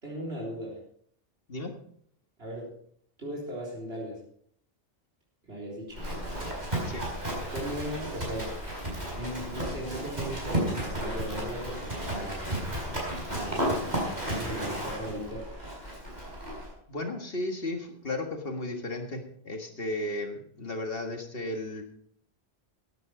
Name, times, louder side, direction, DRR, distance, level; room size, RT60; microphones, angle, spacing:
voice 1, 0.0-0.8 2.4-2.7 3.2-4.2 5.5-6.2 7.5-8.5 9.1-12.7 13.3-15.5, equal, 90° right, -4 dB, 4.1 m, -38 dB
Livestock farm animals working animals, 5.9-16.7, right 1 dB, 45° right, 4.8 m, -33 dB
voice 2, 16.9-21.8, left 2 dB, 65° left, 4 dB, 2.0 m, -34 dB
14.0 x 9.7 x 5.0 m, 0.64 s
omnidirectional pair, 1.0 m